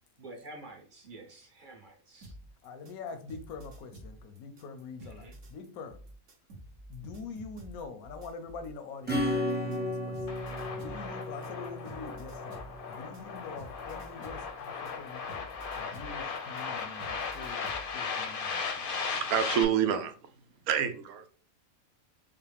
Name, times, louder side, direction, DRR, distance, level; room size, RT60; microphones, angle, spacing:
voice 1, 0.2-2.4 5.0-5.4, right 2 dB, 40° right, 0.9 m, -49 dB
alger-drums, 2.2-8.7 9.1-17.9, right 1 dB, 65° right, 1.2 m, -49 dB
voice 2, 2.6-6.0 6.9-15.2 15.8-18.8, left 5 dB, 90° left, 1.1 m, -45 dB
Acoustic guitar / Strum, 9.1-13.3, left 1 dB, 10° right, 0.5 m, -34 dB
sound 1, 10.3-19.6, left 5 dB, 55° left, 0.6 m, -37 dB
voice 3, 18.8-20.1 20.7-21.3, right 8 dB, 90° right, 1.1 m, -28 dB
5.5 x 2.1 x 3.3 m
omnidirectional pair, 1.5 m